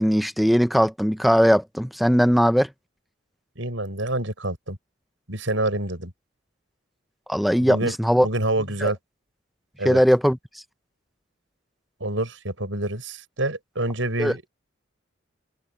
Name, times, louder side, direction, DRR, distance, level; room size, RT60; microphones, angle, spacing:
voice 1, 0.0-2.7 7.3-8.3 8.8-8.9 9.8-10.6 14.2-14.4, equal, ahead, 0.5 m, -19 dB
voice 2, 3.6-4.8 5.3-6.1 7.6-7.9 8.2-9.0 9.8-10.0 12.0-14.5, right 2 dB, 75° right, 6.2 m, -27 dB
head